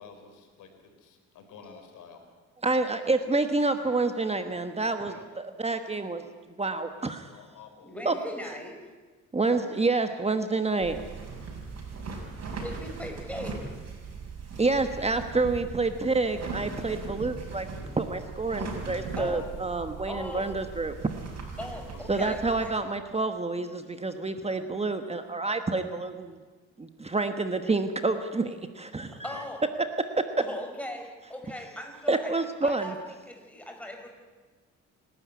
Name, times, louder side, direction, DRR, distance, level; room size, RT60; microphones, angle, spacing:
voice 1, 0.0-2.2 5.1-5.3 5.6-5.8 6.9-7.9 21.9-22.2 29.2-29.4, left 6 dB, 85° left, 5 dB, 4.1 m, -50 dB
voice 2, 2.6-6.2 6.6-7.3 8.0-8.1 9.3-11.0 14.6-17.7 18.0-20.9 22.1-26.4 26.8-29.4 30.2-30.3 32.1-32.9, right 3 dB, 20° right, 8 dB, 1.3 m, -28 dB
voice 3, 7.8-8.8 12.4-13.6 19.2-19.4 20.1-20.5 21.6-22.7 29.2-29.6 30.4-32.3 32.6-34.1, left 1 dB, 5° left, 2 dB, 5.6 m, -39 dB
sound 1, 10.8-22.7, right 4 dB, 55° right, 6.4 m, -39 dB
27.5 x 12.5 x 9.6 m, 1.4 s
cardioid pair, 90°, 30 cm